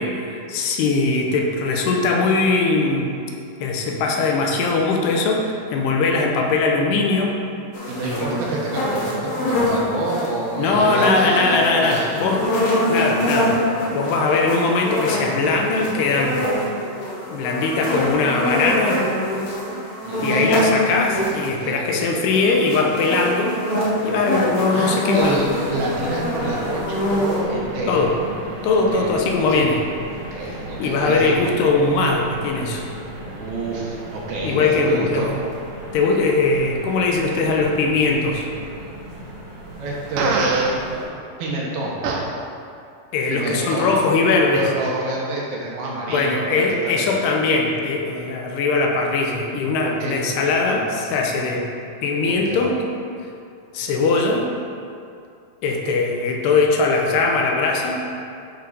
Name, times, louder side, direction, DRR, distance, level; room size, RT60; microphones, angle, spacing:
voice 1, 0.0-3.2 3.6-7.3 8.0-8.3 10.6-13.6 13.9-16.4 17.3-19.0 20.2-23.6 24.0-25.4 27.9-28.1 28.6-29.8 30.4-32.8 34.4-35.3 35.9-38.5 43.1-44.6 46.1-51.7 52.0-52.8 53.7-54.5 55.6-58.0, left 3 dB, 90° left, 1 dB, 2.8 m, -20 dB
sound 1, 7.7-21.5 22.3-27.4, left 1 dB, 65° left, 1.9 m, -24 dB
voice 2, 7.9-12.2 20.0-20.6 21.6-21.8 24.7-28.0 28.9-29.1 29.5-29.7 30.3-31.3 33.3-35.3 39.8-41.1 41.4-41.9 43.3-43.9 44.5-47.1 49.8-50.1 52.2-52.6, right 2 dB, 70° right, -4 dB, 2.7 m, -27 dB
sound 2, 25.1-41.0, right 1 dB, 55° right, 1.2 m, -36 dB
Fart, 40.2-40.7 42.0-42.2, right 4 dB, 90° right, 1.9 m, -22 dB
11.5 x 4.5 x 4.0 m, 2.5 s
omnidirectional pair, 4.8 m